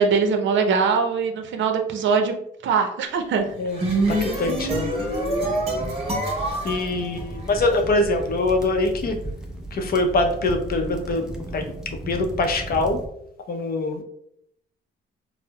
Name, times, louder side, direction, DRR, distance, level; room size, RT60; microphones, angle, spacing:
voice 1, 0.0-2.3 2.6-3.5 4.1-4.2, right 5 dB, 70° right, 6 dB, 0.6 m, -22 dB
Horror Guitar. Confusion., 3.5-7.8, right 1 dB, 30° right, 1.3 m, -26 dB
voice 2, 3.6-4.9 6.6-9.1 9.7-11.3 11.5-11.6 12.1-13.0 13.5-14.0, left 2 dB, 50° left, 4 dB, 0.6 m, -23 dB
sound 1, 3.8-13.1, right 1 dB, 5° right, 0.5 m, -35 dB
4.4 x 2.0 x 2.2 m, 0.72 s
cardioid pair, 90°, 20 cm